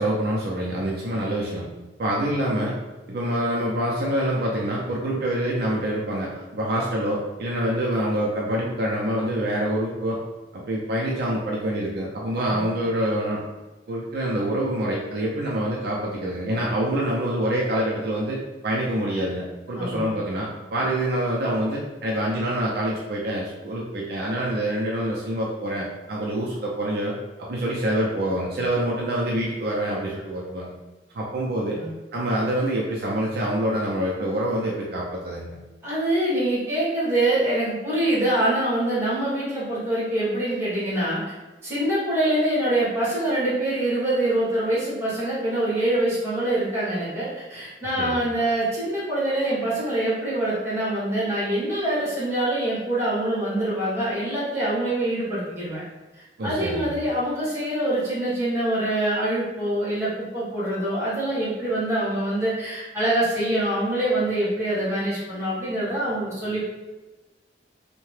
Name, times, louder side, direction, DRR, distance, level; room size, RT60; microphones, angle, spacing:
voice 1, 0.0-1.7 2.0-2.7 3.1-10.2 10.5-13.4 13.9-18.4 18.6-27.1 27.4-30.7 31.1-31.8 32.1-35.6 48.0-48.2 56.4-56.9, right 1 dB, 60° right, -4 dB, 0.5 m, -26 dB
voice 2, 19.8-20.2 31.7-31.9 35.8-41.3 41.6-55.8 56.1-66.7, right 1 dB, 15° right, -8 dB, 1.2 m, -25 dB
2.7 x 2.2 x 3.1 m, 1.2 s
head